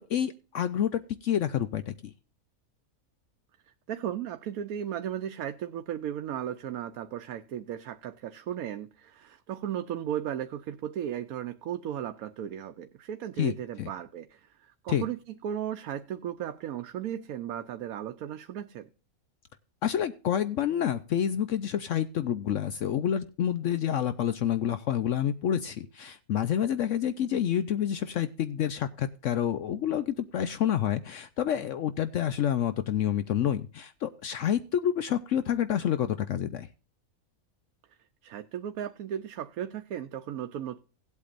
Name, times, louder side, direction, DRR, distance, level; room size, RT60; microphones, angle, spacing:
voice 1, 0.1-2.1 13.4-13.5 13.8-13.9 14.9-15.0 19.8-36.7, left 10 dB, 65° left, 0.9 m, -28 dB
voice 2, 3.9-18.8 38.2-40.8, right 10 dB, 85° right, 1.2 m, -36 dB
18.0 x 8.3 x 2.5 m
omnidirectional pair, 1.5 m